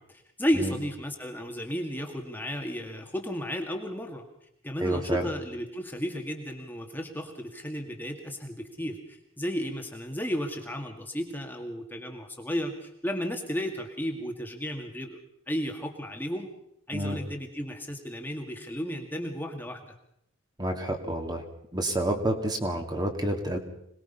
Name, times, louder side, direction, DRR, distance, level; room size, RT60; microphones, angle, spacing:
voice 1, 0.0-4.2 4.6-15.2 15.5-16.5 16.9-20.0, equal, 10° left, 2 dB, 2.0 m, -33 dB
voice 2, 4.8-5.3 16.9-17.2 20.6-21.4 21.7-23.6, right 1 dB, 20° right, 4 dB, 2.3 m, -29 dB
26.5 x 20.0 x 5.6 m, 0.73 s
head